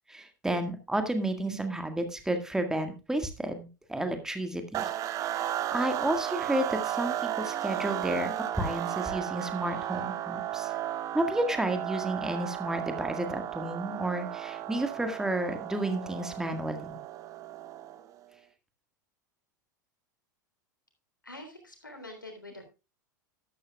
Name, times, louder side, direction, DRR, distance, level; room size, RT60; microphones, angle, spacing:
voice 1, 0.1-4.9 5.2-10.7 11.1-17.0, right 1 dB, 5° right, 7 dB, 1.8 m, -31 dB
sound 1, 4.7-18.1, right 12 dB, 35° right, 0.9 m, -34 dB
voice 2, 21.2-22.7, left 1 dB, 85° left, 4 dB, 3.4 m, -45 dB
13.0 x 12.0 x 2.3 m, 0.28 s
figure-of-eight pair, 85°, 10 cm